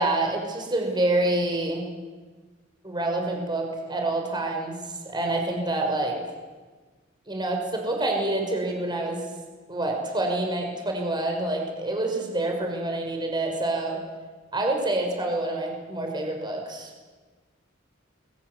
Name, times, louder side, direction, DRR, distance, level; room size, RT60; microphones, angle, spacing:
voice 1, 0.0-1.8 2.8-4.7 5.0-6.2 7.3-9.2 9.7-14.0 14.5-16.9, right 2 dB, 25° right, 2 dB, 5.8 m, -27 dB
29.0 x 22.0 x 8.2 m, 1.4 s
head